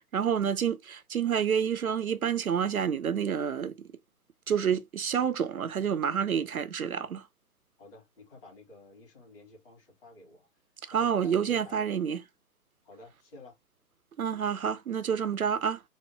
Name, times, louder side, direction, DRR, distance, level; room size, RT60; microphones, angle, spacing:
voice 1, 0.0-3.7 4.5-7.2 10.9-12.2 14.2-15.8, right 8 dB, 65° right, 0.6 m, -28 dB
voice 2, 7.8-10.5 10.9-12.0 12.8-13.5, left 1 dB, 35° left, 2.3 m, -51 dB
4.2 x 2.1 x 4.5 m
figure-of-eight pair, 140°, 47 cm